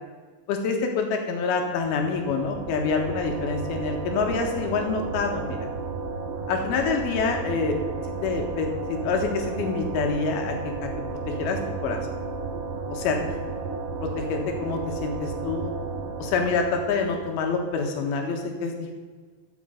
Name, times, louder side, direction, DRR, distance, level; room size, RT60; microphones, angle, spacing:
voice 1, 0.5-5.7 6.5-7.7 8.2-10.9 11.3-12.0 12.9-13.2 14.0-15.7 16.2-18.9, left 4 dB, 75° left, 3 dB, 3.2 m, -27 dB
sound 1, 1.7-17.5, right 4 dB, 65° right, 2.3 m, -33 dB
13.0 x 8.0 x 5.1 m, 1.5 s
omnidirectional pair, 4.5 m